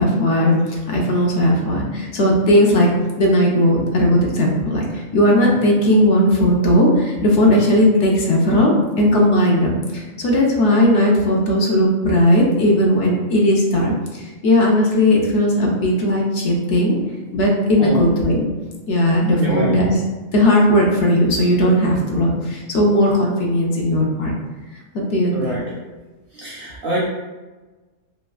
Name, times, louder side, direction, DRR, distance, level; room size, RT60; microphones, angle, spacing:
voice 1, 0.0-2.9 3.2-17.0 17.3-18.5 18.9-20.0 20.3-24.3 24.9-25.6, left 1 dB, 65° left, -1 dB, 0.8 m, -17 dB
voice 2, 19.4-19.8 25.3-25.7 26.3-27.0, equal, 60° right, -5 dB, 0.6 m, -24 dB
3.2 x 2.3 x 2.4 m, 1.2 s
omnidirectional pair, 1.4 m